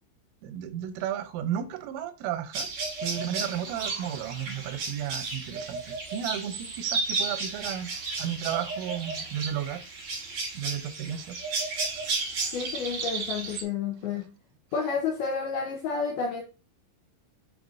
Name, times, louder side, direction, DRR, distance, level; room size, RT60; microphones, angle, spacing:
voice 1, 0.4-2.7 3.0-7.9 8.2-9.8 10.1-11.4, right 10 dB, 90° right, 3.4 m, -33 dB
sound 1, 2.5-13.6, right 4 dB, 60° right, 1.9 m, -33 dB
voice 2, 12.5-14.3 14.7-16.4, left 5 dB, 85° left, 2.2 m, -30 dB
8.0 x 5.3 x 2.7 m
omnidirectional pair, 5.5 m